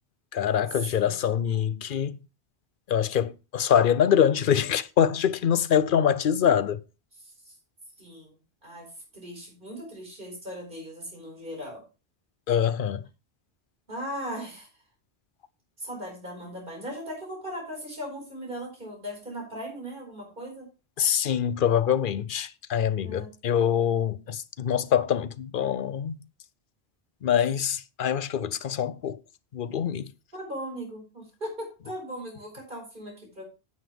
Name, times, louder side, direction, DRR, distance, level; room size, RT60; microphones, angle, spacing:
voice 1, 0.3-2.2 2.9-6.8 12.5-13.0 21.0-26.1 27.2-29.2 29.5-30.1, left 9 dB, 60° left, 0.7 m, -24 dB
voice 2, 0.8-1.4 7.2-7.5 8.0-11.8 13.9-14.7 15.8-20.7 23.0-23.3 30.3-33.4, equal, 50° right, 4.9 m, -38 dB
9.6 x 8.7 x 3.4 m
omnidirectional pair, 1.1 m